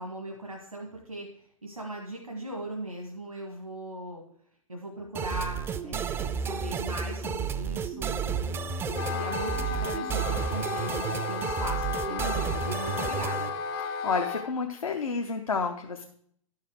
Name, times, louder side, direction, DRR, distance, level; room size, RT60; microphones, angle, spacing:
voice 1, 0.0-4.2 4.7-13.6, right 1 dB, 90° right, 1 dB, 1.5 m, -39 dB
sound 1, 5.1-13.5, right 7 dB, 15° right, 0.4 m, -32 dB
Wind instrument woodwind instrument, 8.9-14.5, left 6 dB, 45° left, 0.7 m, -34 dB
voice 2, 14.0-16.0, left 4 dB, 80° left, 3 dB, 0.8 m, -30 dB
11.5 x 5.7 x 4.7 m, 0.65 s
figure-of-eight pair, 105°, 18 cm